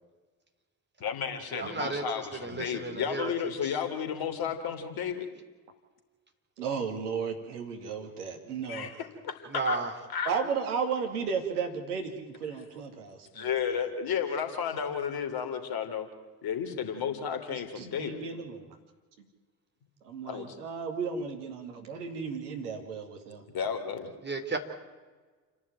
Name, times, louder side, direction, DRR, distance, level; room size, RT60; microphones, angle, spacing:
voice 1, 1.0-5.3 8.7-9.8 10.1-10.3 13.3-16.1 16.4-18.2 20.2-20.6 23.5-24.1, left 7 dB, 50° left, 7 dB, 3.4 m, -33 dB
voice 2, 1.5-2.1 2.4-3.3 3.6-3.7 9.5-9.9 24.2-24.6, right 3 dB, 20° right, 4 dB, 3.9 m, -33 dB
voice 3, 6.6-8.9 10.3-13.6 17.5-18.8 20.0-23.4, right 6 dB, 75° right, 5 dB, 2.4 m, -34 dB
29.5 x 11.0 x 9.4 m, 1.3 s
figure-of-eight pair, 50°, 47 cm